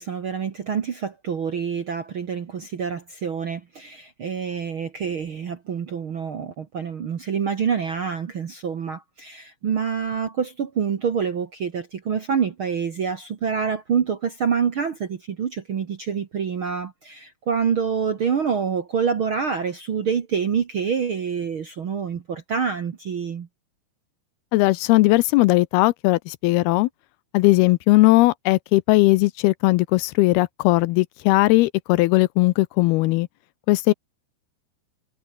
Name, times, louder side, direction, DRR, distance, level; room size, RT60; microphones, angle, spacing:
voice 1, 0.0-23.5, right 6 dB, 65° right, 1.3 m, -26 dB
voice 2, 24.5-26.9 27.3-33.3 33.7-33.9, left 20 dB, 85° left, 2.5 m, -18 dB
omnidirectional pair, 4.7 m